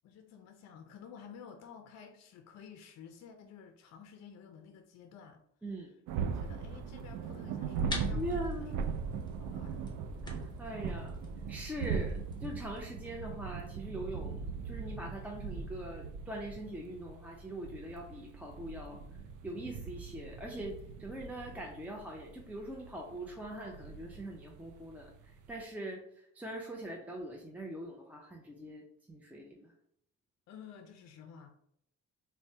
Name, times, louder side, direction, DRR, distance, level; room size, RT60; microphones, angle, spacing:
voice 1, 0.0-5.4 6.3-8.7 9.1-9.8 30.5-31.6, left 7 dB, 60° left, 6 dB, 0.4 m, -52 dB
sound 1, 6.1-25.6, right 6 dB, 85° right, 0.5 m, -40 dB
sound 2, 7.7-12.8, left 1 dB, 15° left, 0.8 m, -45 dB
voice 2, 8.1-8.8 10.2-11.2 11.5-14.4 14.6-19.0 19.4-29.7, right 1 dB, 5° right, -1 dB, 0.4 m, -42 dB
4.3 x 2.1 x 2.7 m, 0.72 s
cardioid pair, 90°, 30 cm